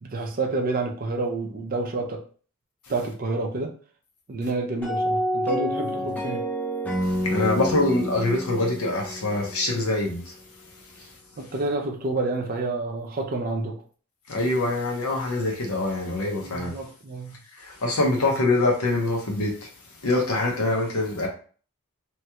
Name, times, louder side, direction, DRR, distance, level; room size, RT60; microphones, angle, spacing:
voice 1, 0.0-2.2 2.9-3.7 4.3-6.4 11.4-13.8 16.4-17.4, right 3 dB, 40° right, 2 dB, 0.5 m, -29 dB
sound 1, 4.8-10.0, equal, 5° left, 0.6 m, -28 dB
voice 2, 7.0-10.3 11.0-11.1 14.3-16.7 17.5-19.7 20.0-21.3, left 2 dB, 80° left, 0 dB, 0.9 m, -24 dB
3.1 x 2.3 x 2.9 m, 0.41 s
head